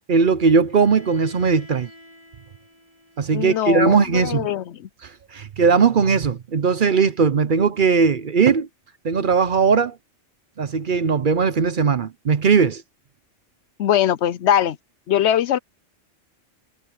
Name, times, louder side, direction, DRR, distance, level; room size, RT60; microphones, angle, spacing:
voice 1, 0.1-1.9 3.2-4.5 5.0-8.7 9.0-10.0 10.6-12.8, right 5 dB, 50° right, 0.8 m, -19 dB
Bowed string instrument, 0.7-4.6, equal, 20° right, 5.6 m, -49 dB
voice 2, 3.3-4.9 13.8-14.8 15.1-15.6, left 10 dB, 70° left, 0.8 m, -21 dB
omnidirectional pair, 1.3 m